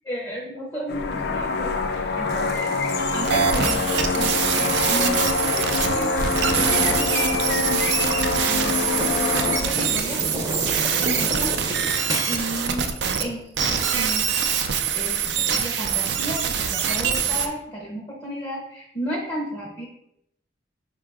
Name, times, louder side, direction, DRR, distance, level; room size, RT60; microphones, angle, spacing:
voice 1, 0.0-2.8 3.1-7.9 8.4-10.2 10.9-11.7 12.3-12.9 13.2-13.4 13.9-14.3 14.9-19.9, equal, 20° left, -3 dB, 0.7 m, -33 dB
sound 1, 0.9-9.6, left 3 dB, 60° left, 0.4 m, -25 dB
sound 2, 2.3-12.7, right 1 dB, 20° right, 0.6 m, -33 dB
sound 3, 3.2-13.3 13.6-17.5, right 7 dB, 65° right, 0.4 m, -24 dB
4.5 x 2.3 x 4.6 m, 0.76 s
head